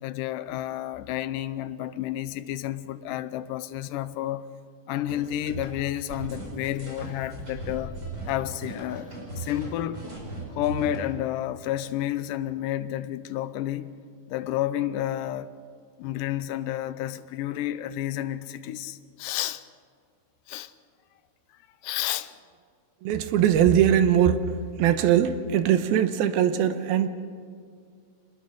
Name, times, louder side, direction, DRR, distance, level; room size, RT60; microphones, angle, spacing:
voice 1, 0.0-4.5 4.9-8.0 8.3-10.0 10.5-14.0 14.3-15.5 16.0-19.6 20.5-20.7 21.8-22.4, left 12 dB, 75° left, 2.0 m, -31 dB
sound 1, 5.1-11.0, right 2 dB, 30° right, 5.5 m, -37 dB
voice 2, 23.0-27.1, right 9 dB, 80° right, 2.9 m, -21 dB
26.5 x 20.5 x 6.5 m
omnidirectional pair, 4.3 m